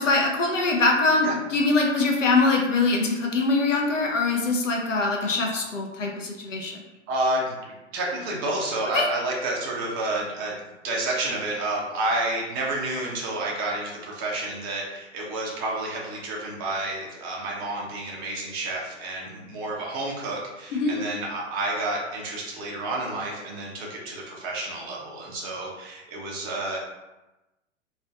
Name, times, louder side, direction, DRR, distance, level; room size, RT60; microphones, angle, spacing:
voice 1, 0.0-6.8 8.9-9.1 20.7-20.9, left 3 dB, 75° left, 1 dB, 0.6 m, -23 dB
voice 2, 7.1-10.5 10.8-26.8, right 2 dB, 20° right, -2 dB, 0.4 m, -30 dB
2.5 x 2.3 x 2.3 m, 1.0 s
figure-of-eight pair, 105°, 37 cm